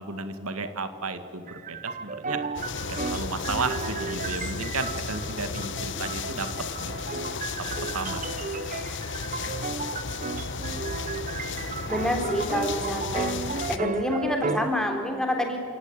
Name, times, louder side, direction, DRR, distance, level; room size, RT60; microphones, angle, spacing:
voice 1, 0.0-2.4 2.9-6.5 6.8-6.9 7.9-8.2, right 3 dB, 80° right, 9 dB, 1.8 m, -33 dB
sound 1, 1.5-14.7, right 4 dB, 35° right, 0.7 m, -34 dB
sound 2, 2.6-13.8, left 4 dB, 55° left, 1.0 m, -34 dB
voice 2, 11.9-13.3 13.7-15.6, left 1 dB, 5° left, 3 dB, 3.3 m, -27 dB
29.5 x 18.0 x 10.0 m, 2.6 s
head